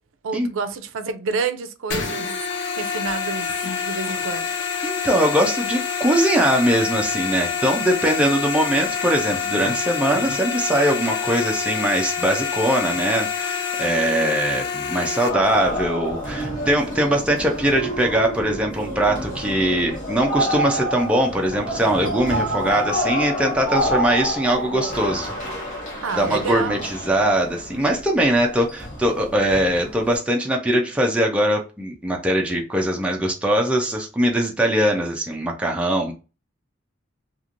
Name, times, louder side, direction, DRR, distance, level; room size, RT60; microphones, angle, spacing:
voice 1, 0.2-2.4 2.8-4.5 26.0-26.9, right 5 dB, 85° right, 0.5 m, -29 dB
sound 1, 1.9-15.3, left 6 dB, 65° left, 0.5 m, -27 dB
voice 2, 4.8-25.3 26.1-36.1, right 1 dB, 5° right, 0.4 m, -21 dB
sound 2, 15.3-30.2, equal, 40° left, 1.2 m, -28 dB
3.0 x 2.5 x 2.5 m
head